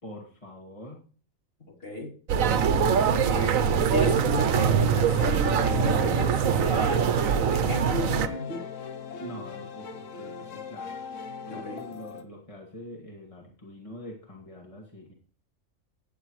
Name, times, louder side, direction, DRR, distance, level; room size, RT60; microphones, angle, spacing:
voice 1, 0.0-1.0 9.2-11.0 11.4-15.1, left 1 dB, 25° left, 2.3 m, -44 dB
voice 2, 1.8-2.1 3.1-8.7 11.5-11.8, left 1 dB, 45° left, 3.6 m, -33 dB
sound 1, 2.3-8.3, right 7 dB, 75° right, 1.2 m, -23 dB
sound 2, 4.3-12.2, left 5 dB, 70° left, 1.3 m, -39 dB
16.5 x 9.8 x 3.2 m
omnidirectional pair, 1.4 m